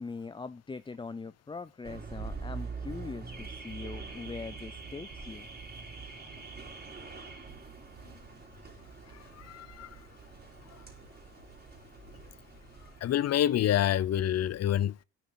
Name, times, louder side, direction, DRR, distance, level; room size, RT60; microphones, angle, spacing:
voice 1, 0.0-5.5, left 4 dB, 15° left, 0.5 m, -42 dB
Car / Alarm, 1.8-13.0, right 4 dB, 30° right, 3.6 m, -44 dB
voice 2, 9.4-9.9 13.0-15.0, left 11 dB, 55° left, 0.6 m, -27 dB
9.3 x 7.2 x 5.8 m
cardioid pair, 90°, 30 cm